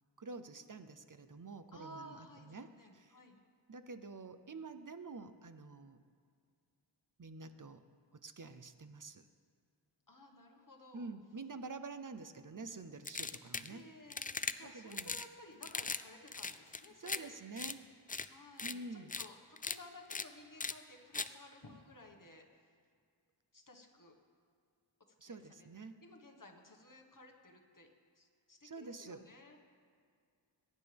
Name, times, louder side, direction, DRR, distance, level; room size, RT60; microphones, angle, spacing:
voice 1, 0.2-3.2 3.7-6.0 7.2-7.8 8.1-9.2 10.9-13.8 14.6-15.2 17.0-17.8 18.6-19.1 25.2-26.0 28.6-29.2, right 3 dB, 45° right, 10 dB, 0.7 m, -48 dB
voice 2, 1.7-3.4 10.1-11.1 13.7-17.4 18.3-22.8 23.5-24.2 25.2-25.7 26.0-29.6, left 1 dB, 45° left, 2 dB, 1.6 m, -56 dB
sound 1, 13.0-13.7 14.1-14.5 14.9-15.3 15.6-16.0 16.3-17.2 17.6-17.7 18.1-18.3 18.6-18.7 19.1-19.3 19.6-19.8 20.1-20.2 20.6-20.7 21.1-21.3, left 4 dB, 20° left, 0.3 m, -39 dB
22.0 x 10.5 x 3.5 m, 2.2 s
wide cardioid pair, 60°, 46 cm